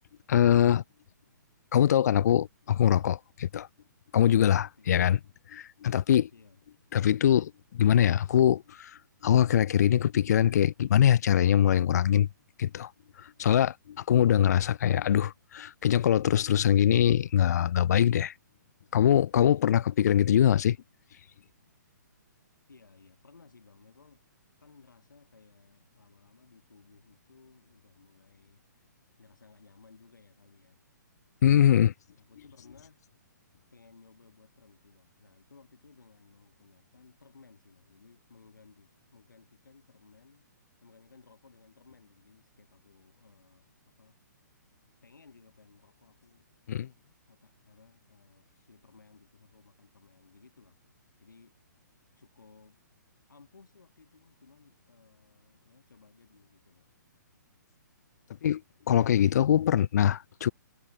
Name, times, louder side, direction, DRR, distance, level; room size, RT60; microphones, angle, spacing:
voice 1, 0.3-0.8 1.7-3.7 4.1-5.2 5.5-6.3 6.9-8.9 9.2-12.3 12.6-12.9 13.4-18.3 18.9-20.8 31.4-31.9 46.7-46.9 58.4-58.6 58.9-60.5, left 10 dB, 60° left, 0.4 m, -23 dB
voice 2, 6.3-6.6 22.7-24.2 24.6-30.8 32.1-33.0 33.7-44.2 45.0-46.5 47.3-50.8 51.2-51.5 51.8-52.8 53.3-56.9, left 4 dB, 80° left, 3.5 m, -59 dB
hypercardioid pair, 130°, 10 cm